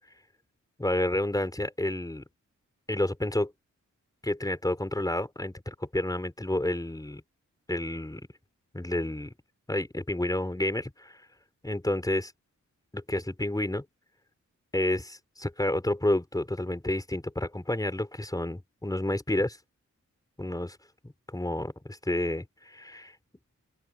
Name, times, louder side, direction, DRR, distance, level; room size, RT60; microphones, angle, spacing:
voice 1, 0.8-2.2 2.9-3.5 4.2-7.2 7.7-8.3 8.7-9.3 9.7-11.2 11.6-12.3 12.9-13.8 14.7-19.6 20.4-20.8 21.0-23.1, left 1 dB, 10° left, 3.5 m, -30 dB
open air
wide cardioid pair, 90°, 30 cm